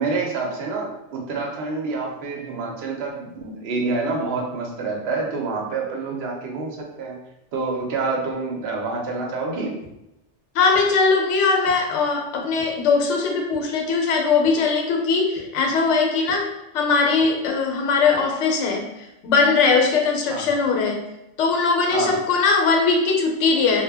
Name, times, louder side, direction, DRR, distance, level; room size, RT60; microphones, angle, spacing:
voice 1, 0.0-7.2 7.5-9.8 20.3-20.6 21.9-22.2, right 3 dB, 65° right, 0 dB, 0.8 m, -27 dB
sound 1, 9.8-9.9 10.7-10.8 11.7-11.8 12.6-12.7 13.5-13.6 14.4-14.5 15.4-15.5 16.3-16.4 17.2-17.3 18.1-18.2, left 1 dB, 35° left, 0.4 m, -40 dB
voice 2, 10.5-16.5 16.7-18.8 19.2-21.0 21.4-23.8, left 4 dB, 75° left, 1 dB, 0.9 m, -20 dB
2.1 x 2.1 x 3.4 m, 0.90 s
omnidirectional pair, 1.3 m